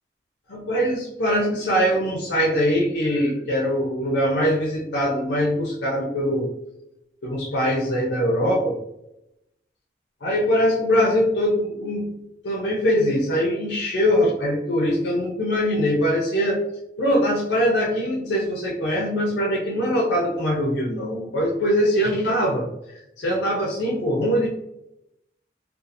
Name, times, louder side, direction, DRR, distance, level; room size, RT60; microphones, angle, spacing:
voice 1, 0.5-6.5 7.2-8.8 10.2-12.1 12.4-16.6 17.0-24.5, equal, 85° left, -3 dB, 0.5 m, -22 dB
2.7 x 2.3 x 2.5 m, 0.85 s
head